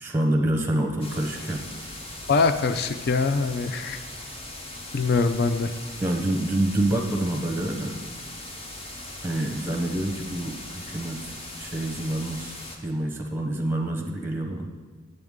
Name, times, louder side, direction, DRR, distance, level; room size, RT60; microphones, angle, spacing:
voice 1, 0.0-1.7 6.0-8.0 9.2-12.5 12.8-14.7, right 1 dB, 10° right, 3 dB, 0.7 m, -27 dB
sound 1, 1.0-12.8, left 1 dB, 30° left, 0.7 m, -39 dB
voice 2, 2.3-4.0 4.9-5.7, left 4 dB, 50° left, 9 dB, 0.4 m, -23 dB
7.8 x 7.8 x 3.6 m, 1.4 s
head